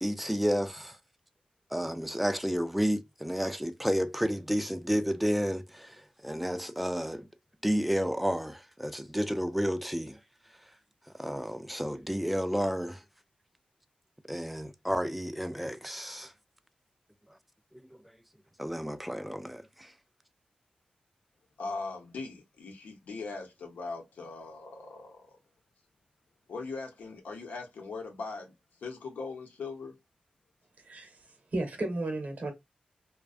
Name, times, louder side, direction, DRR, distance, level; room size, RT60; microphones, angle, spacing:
voice 1, 0.0-1.0 1.7-7.3 7.6-10.2 11.2-13.0 14.3-16.3 18.6-19.9, equal, 5° right, 0.3 m, -31 dB
voice 2, 21.6-25.4 26.5-28.5 28.8-30.0, left 4 dB, 90° left, 0.8 m, -40 dB
voice 3, 30.9-31.2 31.5-32.5, right 2 dB, 65° right, 0.9 m, -33 dB
2.4 x 2.2 x 2.3 m
cardioid pair, 70°, 3 cm